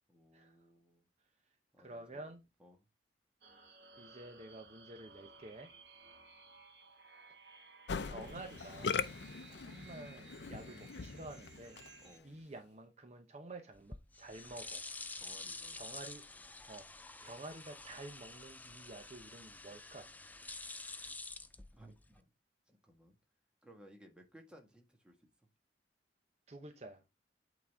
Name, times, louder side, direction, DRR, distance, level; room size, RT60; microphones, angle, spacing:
voice 1, 0.1-1.1 1.7-2.8 12.0-12.4 15.1-15.8 21.7-22.3 22.7-23.2 23.6-25.5, equal, 5° right, 1.6 m, -60 dB
voice 2, 1.8-2.4 4.0-5.7 8.0-9.0 9.5-11.8 12.2-14.8 15.7-16.2 16.6-16.9 17.2-20.1 26.5-27.0, right 2 dB, 40° right, 0.8 m, -50 dB
sound 1, 3.4-12.2, right 4 dB, 75° right, 1.8 m, -58 dB
Musical instrument, 7.9-12.1, left 5 dB, 75° left, 0.5 m, -41 dB
sound 2, 13.7-22.2, left 3 dB, 10° left, 0.4 m, -48 dB
8.6 x 4.0 x 3.5 m
head